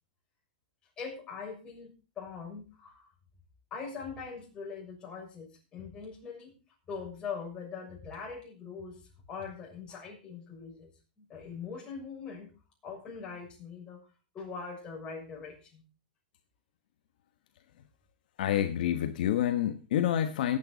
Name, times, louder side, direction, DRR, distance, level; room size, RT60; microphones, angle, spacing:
voice 1, 1.0-3.1 3.7-6.5 6.9-9.0 9.3-10.9 11.2-12.5 12.8-14.0 14.3-15.8, left 5 dB, 20° left, -2 dB, 6.6 m, -42 dB
voice 2, 18.4-20.6, left 11 dB, 70° left, 7 dB, 1.2 m, -28 dB
18.0 x 8.8 x 4.0 m, 0.33 s
supercardioid pair, 150°, 5 cm